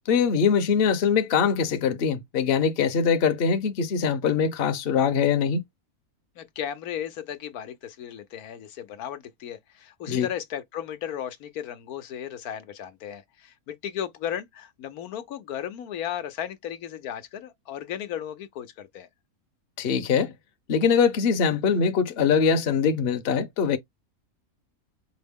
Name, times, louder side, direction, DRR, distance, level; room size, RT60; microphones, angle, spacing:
voice 1, 0.1-5.6 10.1-10.3 19.8-20.3 20.7-23.8, left 6 dB, 50° left, 0.9 m, -22 dB
voice 2, 6.4-19.1, left 10 dB, 80° left, 1.2 m, -35 dB
5.0 x 2.0 x 3.5 m
omnidirectional pair, 1.6 m